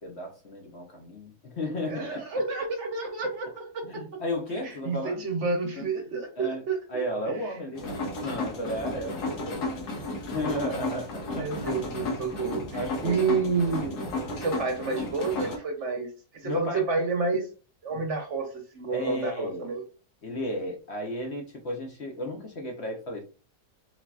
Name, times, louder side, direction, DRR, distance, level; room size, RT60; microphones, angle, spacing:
voice 1, 0.0-2.2 3.8-5.3 5.8-5.9 6.4-6.6 6.9-9.9 10.3-11.7 12.0-12.1 12.7-13.2 13.9-14.0 16.4-16.9 17.9-18.0 18.9-19.7 20.2-23.2, equal, 55° left, 0.8 m, -34 dB
voice 2, 1.9-4.0 4.6-7.1 11.3-14.0 14.3-16.1 16.4-17.5 17.8-19.8, right 4 dB, 55° right, 0.9 m, -29 dB
sound 1, 7.8-15.6, left 2 dB, 85° left, 1.5 m, -33 dB
3.9 x 2.8 x 2.3 m
omnidirectional pair, 1.7 m